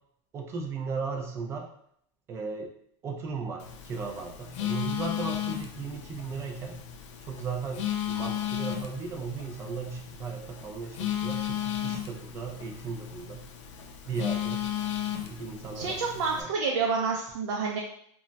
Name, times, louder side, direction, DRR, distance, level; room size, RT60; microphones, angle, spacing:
voice 1, 0.3-1.7 2.3-2.7 3.0-6.8 7.2-13.5 14.1-14.6 15.2-16.0 16.4-16.5, right 5 dB, 20° right, 2 dB, 0.3 m, -36 dB
Telephone, 3.6-16.4, left 11 dB, 80° left, 0.4 m, -35 dB
voice 2, 15.7-17.8, right 4 dB, 85° right, -1 dB, 0.5 m, -28 dB
2.2 x 2.0 x 3.8 m, 0.68 s
supercardioid pair, 165°, 15 cm